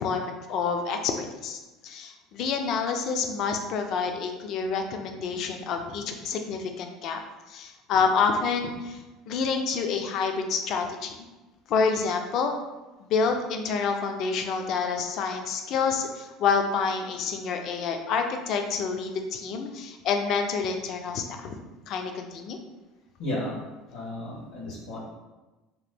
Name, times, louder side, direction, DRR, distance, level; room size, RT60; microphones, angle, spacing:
voice 1, 0.0-7.2 7.5-9.0 9.3-11.2 11.7-12.6 13.0-21.5 21.9-22.6, left 5 dB, 50° left, 5 dB, 0.4 m, -28 dB
voice 2, 23.2-23.6 23.9-25.0, left 1 dB, 85° left, -8 dB, 1.1 m, -33 dB
2.9 x 2.1 x 3.3 m, 1.1 s
cardioid pair, 140°, 0 cm